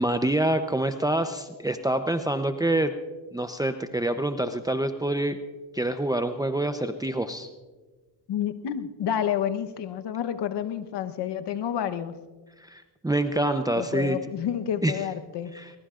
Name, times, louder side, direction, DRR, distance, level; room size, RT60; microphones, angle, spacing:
voice 1, 0.0-2.9 3.3-5.4 5.7-7.5 12.6-14.2 14.8-15.0 15.5-15.7, right 1 dB, 10° right, 8 dB, 0.7 m, -26 dB
voice 2, 8.3-12.2 13.7-15.5, left 9 dB, 70° left, 9 dB, 1.1 m, -29 dB
22.5 x 21.0 x 2.5 m, 1.3 s
cardioid pair, 80°, 43 cm